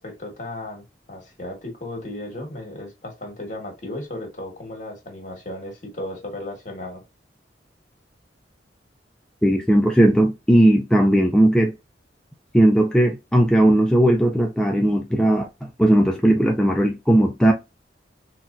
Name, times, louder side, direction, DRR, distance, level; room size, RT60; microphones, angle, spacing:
voice 1, 0.0-7.0, left 1 dB, 45° left, 1.4 m, -35 dB
voice 2, 9.4-11.7 12.5-15.5 15.8-17.5, right 1 dB, 5° left, 0.3 m, -17 dB
4.0 x 2.2 x 2.4 m
head